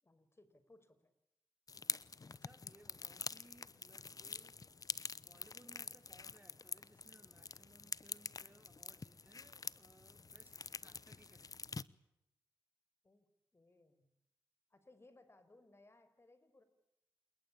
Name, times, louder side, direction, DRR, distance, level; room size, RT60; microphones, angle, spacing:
voice 1, 0.0-1.1 13.0-13.3 13.5-14.1 14.7-16.6, left 2 dB, 30° left, 11 dB, 5.6 m, -65 dB
sound 1, 1.7-11.8, left 4 dB, 45° left, 0.9 m, -46 dB
voice 2, 2.3-11.9, right 1 dB, 20° right, 8 dB, 3.4 m, -65 dB
28.0 x 22.0 x 8.9 m, 0.83 s
cardioid pair, 65°, 8 cm